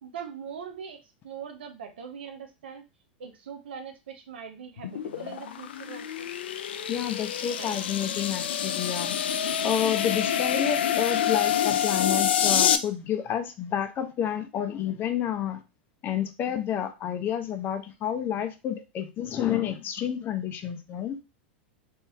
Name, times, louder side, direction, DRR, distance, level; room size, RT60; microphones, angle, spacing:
voice 1, 0.0-2.8 3.2-6.3 7.6-7.8, right 7 dB, 75° right, 5 dB, 0.8 m, -41 dB
sound 1, 4.8-12.8, left 9 dB, 80° left, 0.4 m, -27 dB
voice 2, 6.9-9.2 9.6-15.6 16.0-21.2, left 9 dB, 35° left, 8 dB, 0.6 m, -30 dB
3.1 x 2.7 x 3.4 m, 0.27 s
hypercardioid pair, 95°, 6 cm